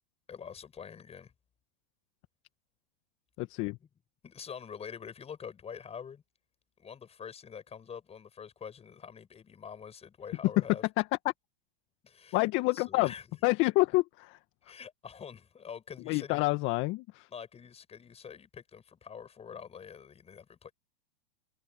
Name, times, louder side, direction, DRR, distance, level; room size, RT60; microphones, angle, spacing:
voice 1, 0.3-1.3 4.2-6.2 6.8-10.8 12.0-13.2 14.6-16.4 17.3-20.7, left 7 dB, 20° left, 7.9 m, -46 dB
voice 2, 3.4-3.8 11.0-11.1 12.3-13.1 13.4-14.4 16.1-17.3, left 22 dB, 40° left, 1.7 m, -28 dB
hypercardioid pair, 115°, 30 cm